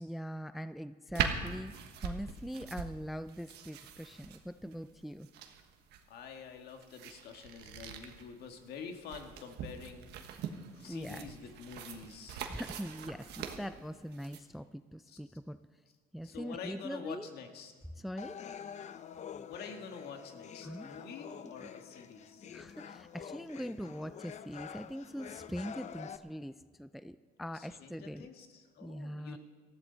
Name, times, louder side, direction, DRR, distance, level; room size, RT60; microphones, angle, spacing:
voice 1, 0.0-1.7 2.0-5.3 10.9-11.3 12.5-15.6 16.1-17.3 18.0-18.4 20.6-21.0 22.5-28.3 28.8-29.4, equal, ahead, 13 dB, 0.3 m, -42 dB
sound 1, 1.1-14.4, right 7 dB, 80° right, 1.4 m, -42 dB
voice 2, 6.1-10.1 10.8-12.4 15.1-15.4 16.2-17.7 19.5-22.5 27.5-29.4, left 6 dB, 70° left, 4 dB, 1.8 m, -47 dB
sound 2, 18.2-26.2, left 8 dB, 45° left, 0.6 m, -47 dB
19.5 x 14.0 x 4.0 m, 1.5 s
cardioid pair, 110°, 17 cm